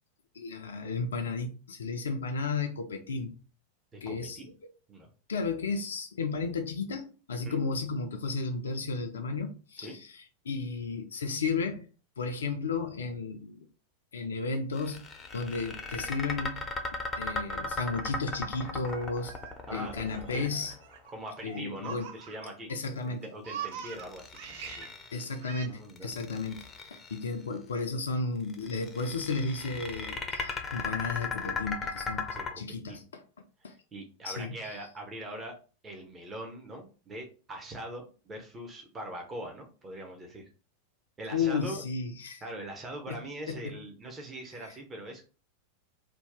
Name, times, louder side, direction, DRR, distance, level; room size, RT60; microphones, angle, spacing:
voice 1, 0.3-3.3 4.0-4.4 5.3-11.9 12.2-13.7 14.1-15.0 15.3-16.7 17.2-19.3 19.7-20.7 21.4-22.1 22.7-23.2 25.1-26.6 27.1-32.3 32.6-33.2 33.6-33.7 34.2-34.8 41.3-42.4 43.1-43.2 43.5-43.8, left 4 dB, 65° left, 0.4 m, -33 dB
voice 2, 3.9-4.5 4.9-5.1 7.4-7.6 9.8-10.0 19.7-20.0 20.3-20.5 21.1-22.7 23.1-24.9 25.7-26.1 32.3-33.0 33.6-35.6 35.8-40.4 41.2-41.9 42.4-45.3, right 1 dB, 20° right, 0.7 m, -42 dB
sound 1, 14.8-21.0 23.8-25.4 25.9-27.2 28.5-32.5, left 3 dB, 20° left, 0.6 m, -37 dB
Laughter, 18.6-22.7 23.0-24.9 25.4-25.7, right 8 dB, 55° right, 0.5 m, -43 dB
2.7 x 2.3 x 3.5 m
figure-of-eight pair, 90°, 0 cm